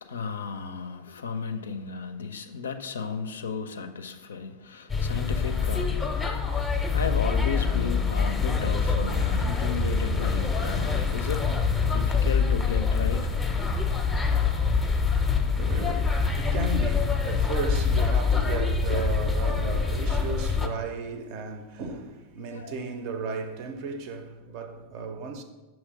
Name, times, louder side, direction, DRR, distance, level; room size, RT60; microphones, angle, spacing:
voice 1, 0.0-6.2 6.9-11.6 11.9-13.3 18.4-19.0 19.4-19.9 22.5-22.8, left 5 dB, 70° left, 0.4 m, -34 dB
sound 1, 4.9-20.7, left 5 dB, 10° left, 0.6 m, -25 dB
voice 2, 15.5-25.4, right 4 dB, 45° right, 0.5 m, -35 dB
6.3 x 3.0 x 5.1 m
figure-of-eight pair, 90°, 0 cm